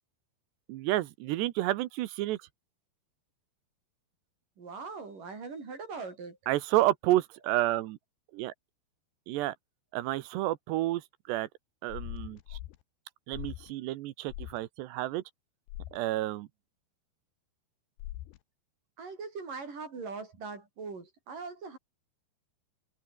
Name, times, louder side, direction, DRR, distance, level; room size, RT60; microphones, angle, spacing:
voice 1, 0.7-2.4 6.5-8.0 8.3-8.5 9.3-9.5 9.9-11.0 11.3-11.5 11.8-12.6 13.3-15.2 15.9-16.5, right 16 dB, 80° right, 3.0 m, -30 dB
voice 2, 4.6-6.4 19.0-21.8, right 4 dB, 50° right, 7.6 m, -41 dB
sound 1, 11.9-12.8 13.3-13.7 14.3-14.6 15.7-16.0 18.0-18.4, left 15 dB, 75° left, 3.1 m, -41 dB
omnidirectional pair, 5.1 m